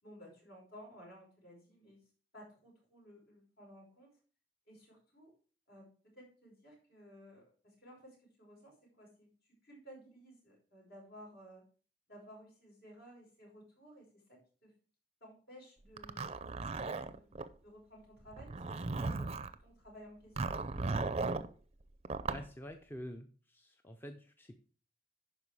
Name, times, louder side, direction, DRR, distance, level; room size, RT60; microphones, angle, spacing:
voice 1, 0.0-2.0 2.3-4.1 4.7-5.3 5.7-5.9 6.1-9.3 9.6-11.6 12.1-14.7 15.2-16.2 16.8-20.8, equal, 60° left, -2 dB, 5.3 m, -56 dB
Zipper (clothing), 16.0-17.5 18.3-19.5 20.4-21.5 22.0-22.5, right 3 dB, 35° right, 0.6 m, -36 dB
voice 2, 22.3-24.5, equal, 10° left, 5 dB, 0.7 m, -47 dB
11.0 x 4.8 x 4.8 m, 0.40 s
head